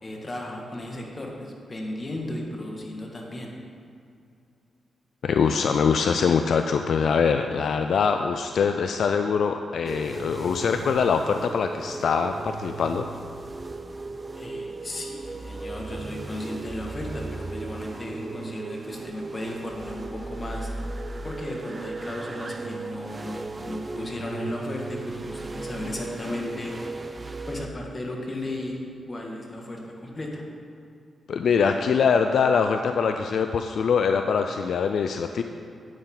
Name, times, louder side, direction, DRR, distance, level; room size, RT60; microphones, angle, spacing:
voice 1, 0.0-3.5 14.4-20.7 21.2-26.7 27.5-28.8 29.1-30.4, left 1 dB, 35° left, 0 dB, 2.0 m, -35 dB
voice 2, 5.2-13.1 31.3-35.4, left 6 dB, 75° left, 7 dB, 0.4 m, -23 dB
sound 1, 9.8-27.7, right 3 dB, 35° right, 0.5 m, -36 dB
10.5 x 8.7 x 3.9 m, 2.5 s
cardioid pair, 60°, 0 cm